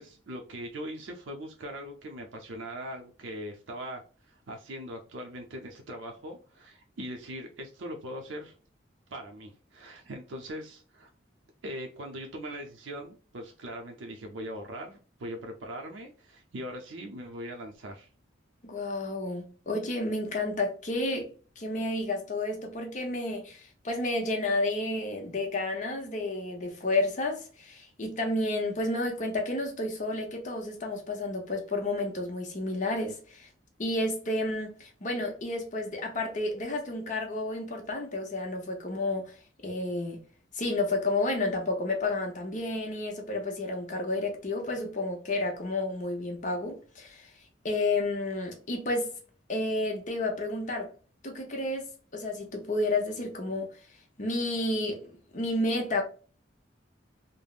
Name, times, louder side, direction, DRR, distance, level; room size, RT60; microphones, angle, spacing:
voice 1, 0.0-8.5 9.1-11.1 11.6-18.1, equal, 80° right, 0.5 m, -41 dB
voice 2, 18.6-21.3 21.6-33.5 33.8-39.3 39.6-40.2 40.5-47.3 47.6-49.1 49.5-50.9 51.2-53.7 54.2-55.1 55.3-56.0, left 2 dB, 40° left, 0.7 m, -31 dB
3.4 x 2.0 x 2.3 m
head